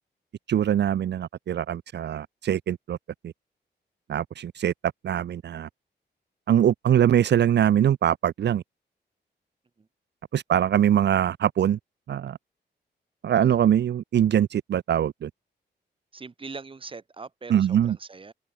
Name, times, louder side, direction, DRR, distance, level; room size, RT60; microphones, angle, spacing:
voice 1, 0.5-3.0 3.2-3.3 4.1-4.7 5.0-5.7 6.5-8.6 10.3-11.8 12.1-12.4 13.2-15.3 17.5-18.0, right 10 dB, 70° right, 0.8 m, -23 dB
voice 2, 16.1-18.3, right 4 dB, 30° right, 7.0 m, -41 dB
wide cardioid pair, 175°, 18 cm